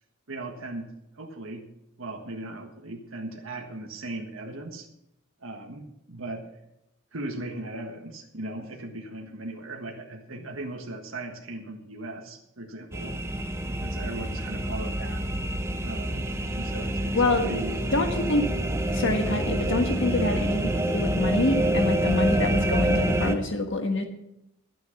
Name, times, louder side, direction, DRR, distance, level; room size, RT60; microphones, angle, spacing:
voice 1, 0.3-1.7 2.0-4.9 5.4-6.5 7.1-13.2 13.8-15.3 15.8-17.8 20.1-20.4, right 2 dB, 80° right, 1 dB, 1.6 m, -38 dB
sound 1, 12.9-23.4, right 1 dB, 15° right, 0.9 m, -27 dB
voice 2, 17.1-17.6 17.9-18.5 18.9-20.6 20.9-24.0, left 2 dB, 65° left, 5 dB, 1.5 m, -26 dB
12.0 x 9.3 x 6.0 m, 0.83 s
head